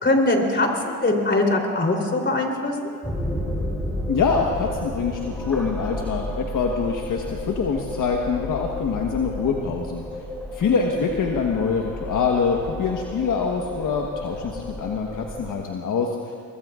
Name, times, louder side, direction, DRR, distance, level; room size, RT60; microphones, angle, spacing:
voice 1, 0.0-2.9, left 2 dB, 30° left, 1 dB, 3.5 m, -22 dB
sound 1, 3.0-15.5, left 1 dB, 5° left, 3.8 m, -32 dB
voice 2, 4.1-10.0 10.5-16.3, left 5 dB, 55° left, 0 dB, 1.4 m, -25 dB
24.0 x 22.0 x 2.5 m, 2.2 s
cardioid pair, 75°, 37 cm